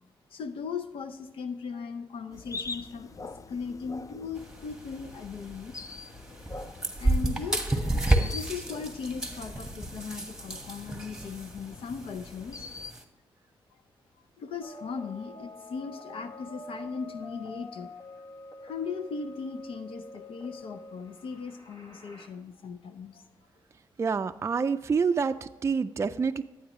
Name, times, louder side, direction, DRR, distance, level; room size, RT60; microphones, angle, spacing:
voice 1, 0.3-5.7 7.0-7.9 8.2-12.7 14.4-17.9 18.6-23.3, left 5 dB, 75° left, 10 dB, 0.6 m, -38 dB
sound 1, 2.3-12.9, left 3 dB, 35° left, 0.5 m, -44 dB
sound 2, 4.4-13.0, right 1 dB, 5° right, 1.3 m, -32 dB
sound 3, 14.6-22.3, left 1 dB, 55° left, 1.9 m, -46 dB
voice 2, 24.0-26.4, right 5 dB, 30° right, 8 dB, 0.3 m, -27 dB
12.0 x 8.6 x 3.1 m, 1.0 s
cardioid pair, 70°, 9 cm